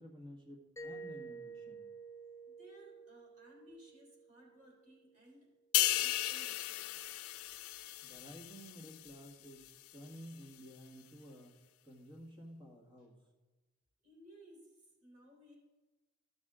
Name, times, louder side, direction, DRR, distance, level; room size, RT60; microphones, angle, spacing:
voice 1, 0.0-1.8 8.0-13.2, equal, 20° right, 0 dB, 1.7 m, -53 dB
Mallet percussion, 0.8-5.4, right 3 dB, 15° left, 0.4 m, -51 dB
voice 2, 2.4-5.5 5.9-6.9 14.0-15.6, equal, 35° right, -3 dB, 3.6 m, -60 dB
sound 1, 5.7-9.3 9.7-9.9, left 15 dB, 80° left, 0.4 m, -35 dB
14.5 x 6.3 x 3.7 m, 1.2 s
head